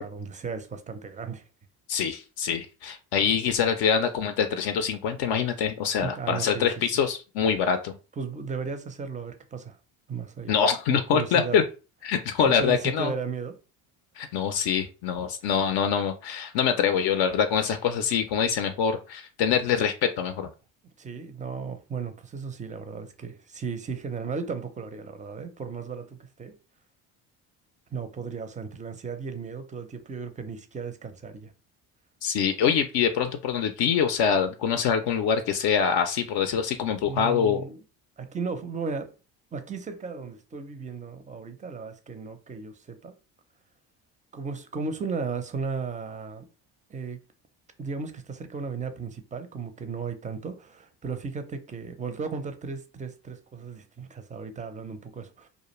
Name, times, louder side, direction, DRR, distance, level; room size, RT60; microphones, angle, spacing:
voice 1, 0.0-1.4 6.0-6.7 8.2-9.8 10.1-10.6 10.9-11.6 12.6-13.6 21.0-26.6 27.9-31.5 37.0-37.8 38.2-39.1 39.5-43.1 44.3-46.4 46.9-47.2 47.8-55.5, right 5 dB, 20° right, 0.4 m, -35 dB
voice 2, 1.9-8.0 10.5-11.6 12.0-13.1 14.2-20.5 32.2-37.6, left 7 dB, 60° left, 0.5 m, -25 dB
2.3 x 2.1 x 3.0 m
hypercardioid pair, 65°, 44 cm